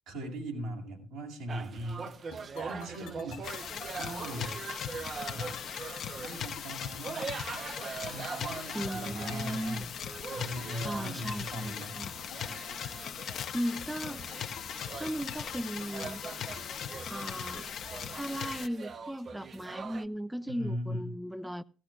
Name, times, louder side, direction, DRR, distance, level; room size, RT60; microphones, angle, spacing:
voice 1, 0.1-2.1 2.6-3.4 4.0-4.6 5.3-5.6 6.2-7.4 8.0-9.9 10.3-12.0 20.5-21.1, equal, 85° right, 7.0 m, -39 dB
sound 1, 1.5-6.6 6.8-20.1, right 5 dB, 45° right, 0.7 m, -43 dB
sound 2, 2.1-18.1, left 11 dB, 85° left, 1.0 m, -52 dB
sound 3, 3.4-18.7, left 8 dB, 55° left, 0.9 m, -40 dB
voice 2, 8.7-9.9 10.8-12.1 13.5-14.2 15.0-16.2 17.1-17.7 18.1-21.6, equal, 5° right, 0.5 m, -37 dB
16.0 x 16.0 x 2.4 m
supercardioid pair, 85°, 0 cm